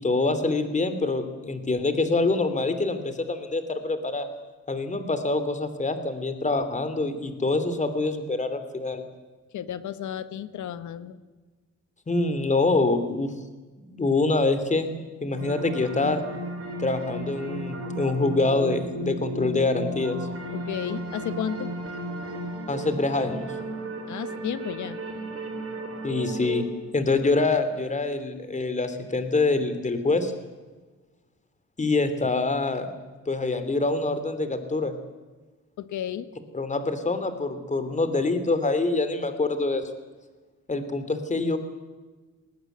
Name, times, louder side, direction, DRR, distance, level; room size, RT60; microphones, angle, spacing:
voice 1, 0.0-4.3 4.7-9.0 12.1-13.3 13.8-16.2 16.8-20.2 22.7-23.5 26.0-26.6 26.9-30.3 31.8-32.8 33.3-34.9 36.5-39.9 40.7-41.6, left 3 dB, 25° left, 10 dB, 2.9 m, -25 dB
voice 2, 9.5-11.2 20.5-21.7 24.1-25.0 35.8-36.3, left 9 dB, 75° left, 13 dB, 1.4 m, -33 dB
sound 1, 15.3-26.7, right 1 dB, 50° right, 5.9 m, -34 dB
19.0 x 19.0 x 8.0 m, 1.3 s
cardioid pair, 90°, 30 cm